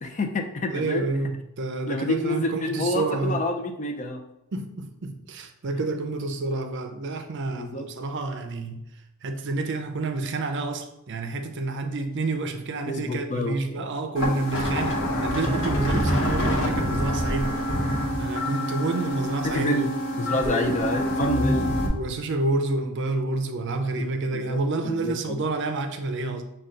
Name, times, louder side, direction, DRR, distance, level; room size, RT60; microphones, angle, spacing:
voice 1, 0.0-1.1 1.9-4.2 7.5-7.9 12.9-13.9 19.4-19.9 20.2-21.7 24.0-24.1 24.3-24.6 24.8-25.5, left 1 dB, 35° left, 4 dB, 0.5 m, -28 dB
voice 2, 0.7-3.4 4.5-8.8 9.2-17.7 18.2-19.9 21.9-26.4, right 3 dB, 55° right, 6 dB, 0.5 m, -29 dB
sound 1, 14.2-21.9, equal, 60° left, 1.0 m, -26 dB
5.4 x 2.3 x 3.7 m, 0.87 s
head